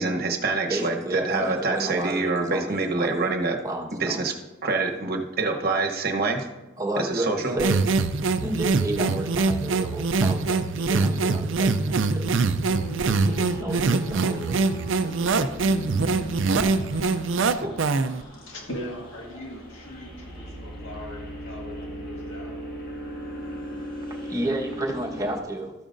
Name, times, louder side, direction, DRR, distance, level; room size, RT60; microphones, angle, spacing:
voice 1, 0.0-3.6 4.0-4.3 4.6-6.5 7.0-7.6 17.6-17.8, right 3 dB, 50° right, 3 dB, 1.0 m, -26 dB
voice 2, 0.7-3.3 3.6-4.2 6.8-7.8 8.4-12.3 13.1-14.7 15.0-15.5 24.2-25.7, right 1 dB, 15° right, -2 dB, 1.3 m, -32 dB
sound 1, 7.6-18.2, right 4 dB, 65° right, 0.4 m, -23 dB
sound 2, 12.7-25.4, equal, 45° left, 2.0 m, -38 dB
voice 3, 18.4-22.5, equal, 80° left, -1 dB, 1.7 m, -39 dB
13.0 x 8.8 x 2.6 m, 1.1 s
head